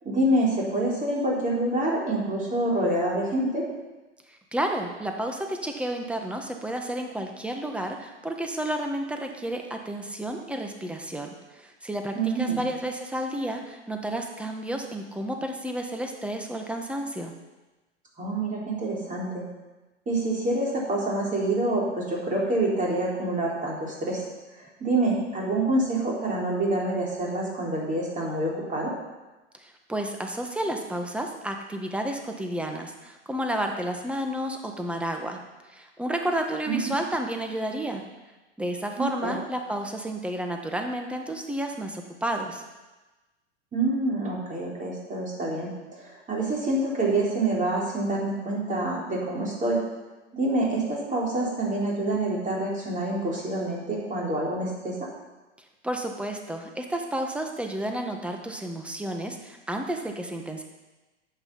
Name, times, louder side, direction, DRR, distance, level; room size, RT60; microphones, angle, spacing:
voice 1, 0.0-3.7 12.1-12.7 18.2-19.4 20.1-24.2 24.8-28.9 36.7-36.9 39.0-39.4 43.7-49.8 50.3-55.1, right 2 dB, 20° right, -3 dB, 4.2 m, -27 dB
voice 2, 4.3-17.3 29.5-35.4 35.7-38.0 38.6-42.6 55.8-60.6, right 1 dB, 5° right, 3 dB, 1.5 m, -31 dB
11.0 x 8.2 x 5.6 m, 1.1 s
hypercardioid pair, 95°, 35 cm